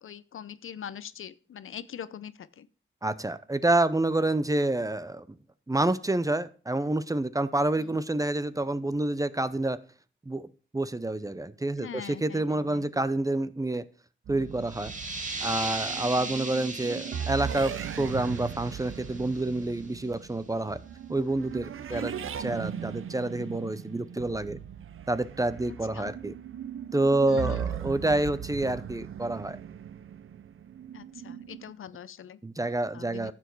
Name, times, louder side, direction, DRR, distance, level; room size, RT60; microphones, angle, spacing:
voice 1, 0.0-2.7 7.8-8.0 11.8-12.9 16.2-16.4 21.9-22.3 25.9-26.1 27.3-27.7 30.9-32.4 32.9-33.3, left 8 dB, 80° left, 16 dB, 0.6 m, -43 dB
voice 2, 3.0-5.4 5.7-9.8 10.3-10.5 10.7-13.8 14.3-14.9 15.4-20.8 21.1-22.1 22.4-24.6 25.1-26.3 26.9-29.6 32.4-33.3, right 2 dB, 15° right, 15 dB, 0.6 m, -28 dB
sound 1, 14.3-31.7, right 8 dB, 80° right, 0.6 m, -38 dB
sound 2, 14.6-20.0, right 3 dB, 35° right, 2.0 m, -38 dB
11.0 x 7.2 x 4.6 m, 0.38 s
wide cardioid pair, 85°, 21 cm